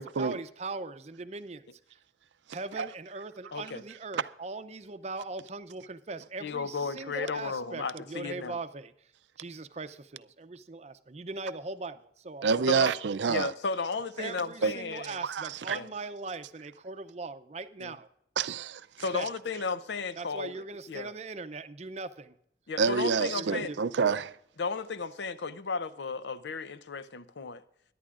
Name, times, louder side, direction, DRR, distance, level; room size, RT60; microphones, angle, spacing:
voice 1, 0.0-2.0 2.5-9.1 9.4-12.5 14.2-18.1 19.1-19.3 20.2-22.3 23.3-23.8, right 3 dB, 40° right, 0.6 m, -40 dB
voice 2, 3.5-3.8 6.4-8.6 12.7-12.9 13.3-15.2 15.7-15.9 17.8-18.0 19.0-21.1 22.7-23.7 24.6-27.6, left 4 dB, 85° left, 0.7 m, -34 dB
voice 3, 12.4-13.5 14.6-14.7 15.1-15.8 18.4-18.8 22.8-24.3, right 5 dB, 90° right, 0.5 m, -27 dB
22.5 x 11.0 x 2.5 m
head